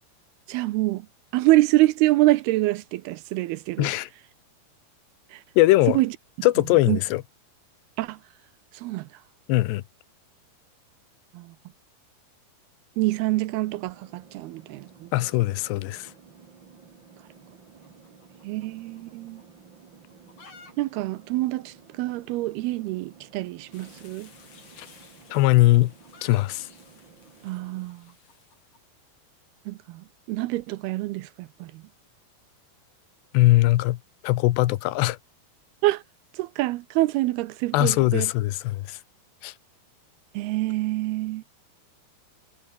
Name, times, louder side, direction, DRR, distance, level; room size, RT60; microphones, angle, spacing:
voice 1, 0.5-1.1 1.3-3.9 5.3-5.4 5.9-6.1 6.9-7.0 8.0-8.2 8.7-9.1 11.3-11.5 13.0-15.1 18.4-19.4 20.8-24.3 27.4-28.0 29.7-31.8 35.8-36.0 36.3-38.3 40.3-41.4, right 18 dB, 80° right, 2.5 m, -26 dB
voice 2, 3.8-4.1 5.6-6.0 6.4-7.2 9.5-9.8 15.1-16.1 24.8-24.9 25.3-25.9 26.2-26.7 33.3-34.0 34.2-35.2 37.7-39.0 39.4-39.5, left 17 dB, 85° left, 3.1 m, -20 dB
sound 1, 13.0-27.9, right 6 dB, 35° right, 2.3 m, -53 dB
sound 2, 17.8-19.1 19.4-19.5 20.0-20.7 21.0-21.1 21.3-21.4 22.0-22.1 23.3-23.5 24.6-28.8, left 4 dB, 50° left, 8.5 m, -53 dB
sound 3, 23.7-28.8, left 5 dB, 35° left, 3.6 m, -56 dB
omnidirectional pair, 4.8 m